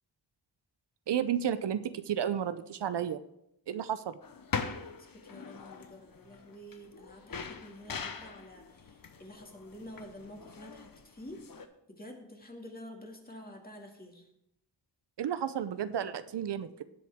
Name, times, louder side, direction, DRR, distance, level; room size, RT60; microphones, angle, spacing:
voice 1, 1.1-3.2 3.7-4.2 15.2-16.8, right 9 dB, 70° right, 12 dB, 0.6 m, -32 dB
sound 1, 4.2-11.7, left 5 dB, 55° left, 1.0 m, -42 dB
voice 2, 5.1-11.4 11.9-14.3, left 1 dB, 20° left, 1 dB, 2.2 m, -49 dB
17.5 x 7.6 x 3.5 m, 0.79 s
wide cardioid pair, 100°, 42 cm